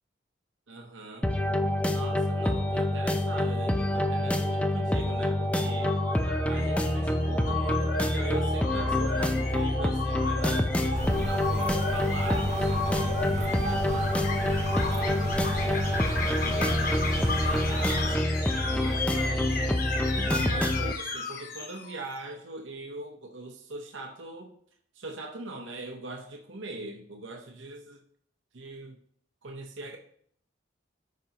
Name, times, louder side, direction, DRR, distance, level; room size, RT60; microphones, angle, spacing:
voice 1, 0.7-1.3 1.9-6.0 6.5-14.1 14.9-18.2 18.7-24.5 24.9-28.0 28.5-29.0 29.4-30.0, right 2 dB, 80° right, 2 dB, 0.8 m, -41 dB
sound 1, 1.2-20.9, left 1 dB, 5° left, 0.4 m, -27 dB
sound 2, 5.6-22.1, left 4 dB, 50° left, 0.9 m, -34 dB
sound 3, 10.9-18.2, right 2 dB, 35° right, 0.6 m, -35 dB
13.0 x 5.1 x 2.9 m, 0.64 s
head